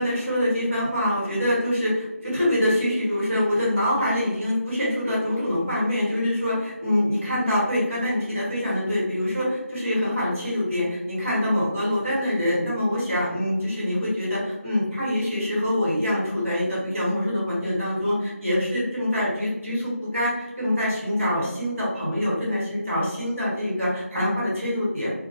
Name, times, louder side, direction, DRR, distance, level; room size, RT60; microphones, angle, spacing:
voice 1, 0.0-25.1, left 1 dB, 10° right, -6 dB, 0.7 m, -25 dB
2.3 x 2.1 x 2.8 m, 0.99 s
figure-of-eight pair, 175°, 8 cm